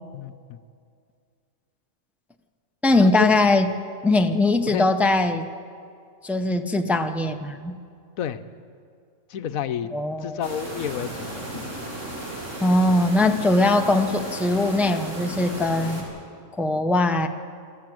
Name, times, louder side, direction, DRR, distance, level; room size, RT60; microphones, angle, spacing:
voice 1, 0.1-0.6 3.0-3.3 4.7-4.9 8.2-8.4 9.3-9.9 10.2-11.7, left 8 dB, 75° left, 11 dB, 1.2 m, -30 dB
voice 2, 2.8-3.7 4.0-5.5 6.2-7.8 9.9-10.4 12.6-16.1 16.5-17.3, left 2 dB, ahead, 5 dB, 0.6 m, -21 dB
sound 1, 10.4-16.0, right 1 dB, 60° right, 4.4 m, -35 dB
25.0 x 14.0 x 7.8 m, 2.3 s
omnidirectional pair, 1.5 m